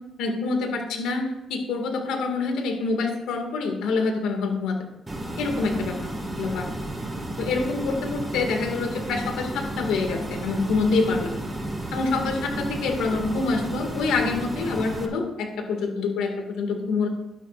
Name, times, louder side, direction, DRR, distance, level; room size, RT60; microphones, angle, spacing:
voice 1, 0.2-4.8 5.4-6.0 6.4-6.7 7.4-11.3 11.9-17.1, left 4 dB, 85° left, 3 dB, 1.9 m, -26 dB
sound 1, 5.1-15.1, right 1 dB, 20° right, 1.8 m, -32 dB
12.0 x 11.0 x 2.5 m, 0.90 s
cardioid pair, 90°, 0 cm